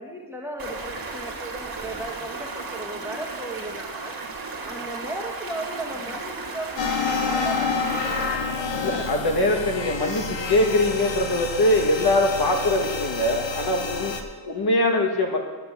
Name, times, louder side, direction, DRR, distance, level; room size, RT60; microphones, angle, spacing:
voice 1, 0.0-9.2, right 1 dB, 5° right, -1 dB, 1.5 m, -36 dB
Stream, 0.6-8.4, right 3 dB, 50° right, 1.7 m, -35 dB
sound 1, 6.8-14.2, left 4 dB, 75° left, 1.2 m, -29 dB
voice 2, 8.7-15.4, left 1 dB, 55° left, 1 dB, 1.6 m, -22 dB
10.0 x 7.8 x 8.0 m, 1.3 s
wide cardioid pair, 170°, 45 cm